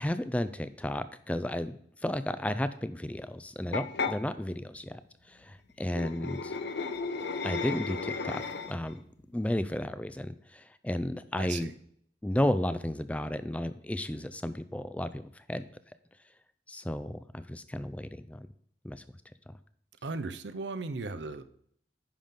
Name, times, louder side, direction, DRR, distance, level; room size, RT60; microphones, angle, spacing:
voice 1, 0.0-5.0 5.4-6.5 7.4-8.4 8.7-9.0 9.3-11.7 12.2-15.2 15.5-15.6 16.7-18.4 18.8-19.0, left 1 dB, 10° left, 13 dB, 0.4 m, -33 dB
sound 1, 3.7-4.2 5.8-8.9, left 4 dB, 75° left, 0.6 m, -34 dB
voice 2, 11.4-11.7 20.0-21.4, right 3 dB, 90° right, 11 dB, 0.7 m, -36 dB
10.0 x 5.7 x 3.6 m, 0.65 s
head